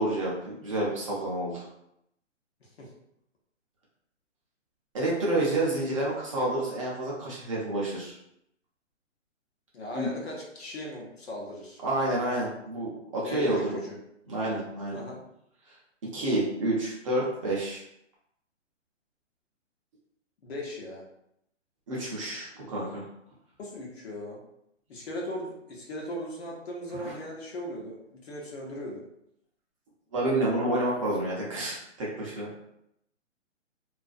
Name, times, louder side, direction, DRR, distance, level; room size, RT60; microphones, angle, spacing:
voice 1, 0.0-1.7 4.9-8.1 9.9-10.1 11.8-13.7 14.3-15.0 15.7-15.8 16.0-17.8 21.9-23.0 26.9-27.2 30.1-32.6, right 1 dB, 25° right, -5 dB, 0.5 m, -29 dB
voice 2, 9.7-11.8 13.2-14.0 14.9-15.2 20.4-21.0 23.6-24.4 24.9-29.0, left 1 dB, 55° left, -2 dB, 0.8 m, -38 dB
2.4 x 2.1 x 2.4 m, 0.78 s
hypercardioid pair, 140°, 38 cm